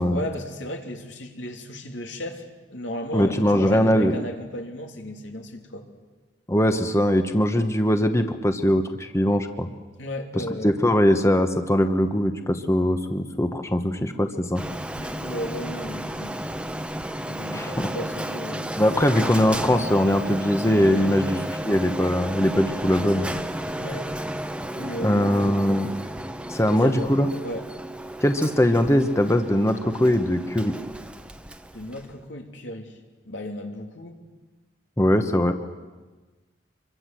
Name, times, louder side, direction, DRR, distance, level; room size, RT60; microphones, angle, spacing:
voice 1, 0.0-5.9 7.5-7.7 10.0-10.7 14.9-16.7 17.3-18.7 21.1-21.4 23.8-24.1 24.8-25.8 26.7-27.1 27.4-27.7 31.7-33.0 33.2-34.2, left 1 dB, 85° left, 3 dB, 3.1 m, -35 dB
voice 2, 3.1-4.1 6.5-9.7 10.4-14.6 17.5-17.9 18.8-21.4 21.7-23.3 25.0-25.9 26.5-27.3 28.2-30.7 35.0-35.5, equal, 15° left, 7 dB, 1.1 m, -21 dB
Printer, 14.5-32.2, right 1 dB, 5° right, 1.0 m, -33 dB
26.5 x 23.5 x 7.7 m, 1.3 s
head